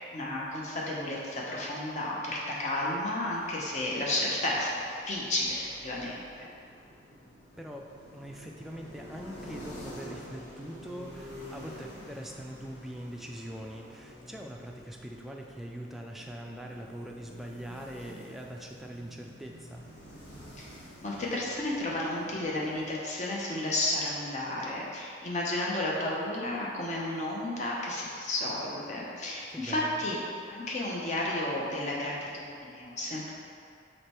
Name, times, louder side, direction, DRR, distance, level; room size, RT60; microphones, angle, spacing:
voice 1, 0.1-6.5 20.6-20.7 21.0-30.2 30.5-33.3, left 1 dB, 40° left, -4 dB, 0.9 m, -32 dB
sound 1, 3.3-22.9, equal, 60° left, 1.3 m, -49 dB
voice 2, 8.1-19.9 29.5-30.0, equal, ahead, -1 dB, 0.4 m, -42 dB
5.0 x 4.4 x 4.4 m, 2.4 s
head